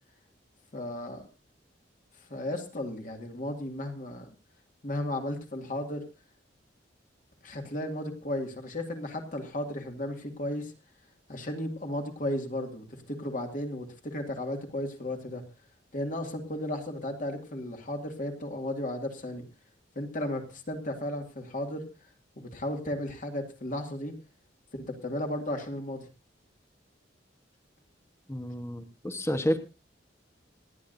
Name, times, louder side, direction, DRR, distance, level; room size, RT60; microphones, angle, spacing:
voice 1, 0.7-1.3 2.3-4.3 4.8-6.0 7.4-10.7 11.3-15.4 15.9-19.4 20.0-21.9 22.4-24.1 24.7-26.1, left 1 dB, 45° left, 4 dB, 2.2 m, -34 dB
voice 2, 28.3-29.6, equal, 15° left, 8 dB, 1.2 m, -30 dB
28.0 x 9.7 x 2.6 m, 0.28 s
head